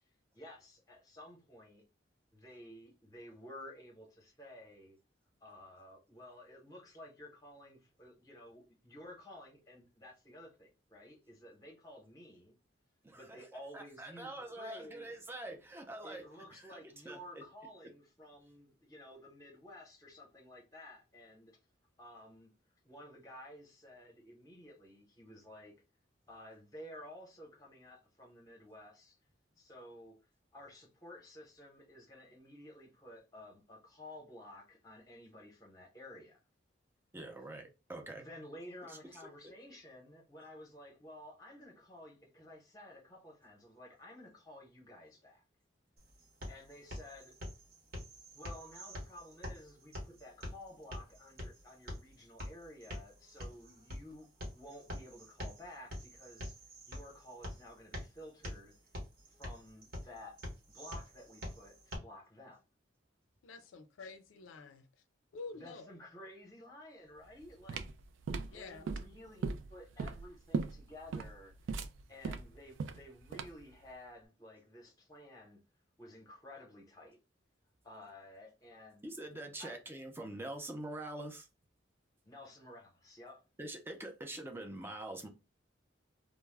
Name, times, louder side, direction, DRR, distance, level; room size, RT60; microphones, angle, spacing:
voice 1, 0.3-1.8 2.3-5.0 5.4-12.6 13.1-14.3 14.6-15.1 16.0-21.6 22.0-22.5 22.8-25.7 26.3-29.2 29.6-30.2 30.5-36.4 38.2-45.4 46.5-47.4 48.3-56.6 56.9-58.7 59.4-60.4 60.7-62.6 65.5-67.9 68.4-71.8 72.1-75.6 76.0-77.2 77.8-79.1 79.6-79.8 82.2-83.4, left 1 dB, 20° left, 0.8 m, -53 dB
voice 2, 13.0-13.4 13.7-17.4 37.1-38.2 38.9-39.0 39.2-39.3 79.0-81.5 83.6-85.3, right 1 dB, 10° right, 0.4 m, -45 dB
sound 1, 46.0-62.0, equal, 50° right, 0.9 m, -46 dB
voice 3, 63.4-64.9 65.3-65.9 68.5-68.9, left 4 dB, 90° left, 0.4 m, -48 dB
sound 2, 67.2-73.7, right 4 dB, 75° right, 0.3 m, -39 dB
2.2 x 2.0 x 3.2 m
head